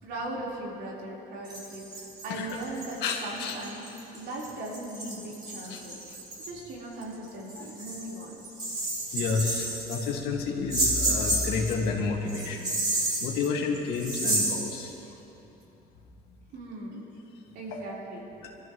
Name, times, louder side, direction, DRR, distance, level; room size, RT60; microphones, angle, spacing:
voice 1, 0.0-3.9 4.1-6.1 6.4-8.5 16.5-17.1 17.5-18.3, right 1 dB, 80° right, -5 dB, 4.3 m, -38 dB
Indian Gungroos Ankle Bells Improv, 1.4-6.5 7.0-7.1 7.5-10.1 10.7-11.9 12.3-14.7, right 1 dB, 25° right, 3.7 m, -31 dB
voice 2, 3.0-3.6 5.7-5.8 9.1-12.7 13.2-14.9 17.7-18.0, left 4 dB, 80° left, -1 dB, 2.1 m, -30 dB
26.0 x 13.5 x 3.2 m, 3.0 s
cardioid pair, 110°, 17 cm